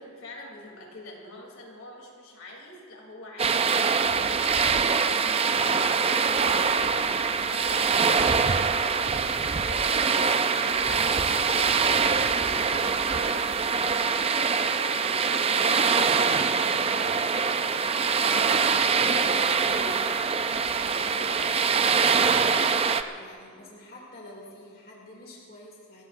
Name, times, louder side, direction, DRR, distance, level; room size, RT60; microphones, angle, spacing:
voice 1, 0.0-7.1 7.3-9.3 9.6-16.6 16.9-17.5 19.5-19.9, left 1 dB, 70° left, -1 dB, 3.2 m, -45 dB
sound 1, 3.4-23.0, right 5 dB, 25° right, 0.4 m, -24 dB
voice 2, 17.5-17.9 18.2-20.4 21.0-26.0, left 1 dB, 45° left, -3 dB, 2.6 m, -45 dB
29.5 x 15.5 x 2.6 m, 2.2 s
head